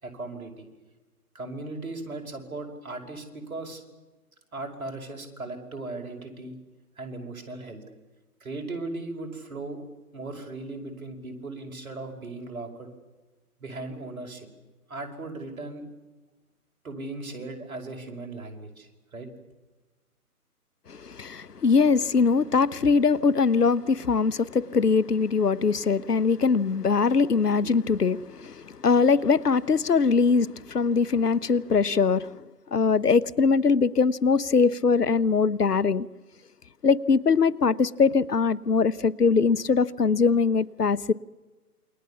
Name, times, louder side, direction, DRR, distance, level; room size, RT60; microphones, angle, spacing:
voice 1, 0.0-0.7 1.3-3.8 4.5-6.6 7.0-7.8 8.4-9.8 10.1-12.9 13.6-14.5 14.9-15.9 16.8-19.3, right 2 dB, 60° right, 5.6 m, -37 dB
voice 2, 20.9-32.3 32.7-36.1 36.8-41.1, left 5 dB, 85° left, 1.0 m, -22 dB
28.0 x 23.0 x 7.2 m
figure-of-eight pair, 140°, 46 cm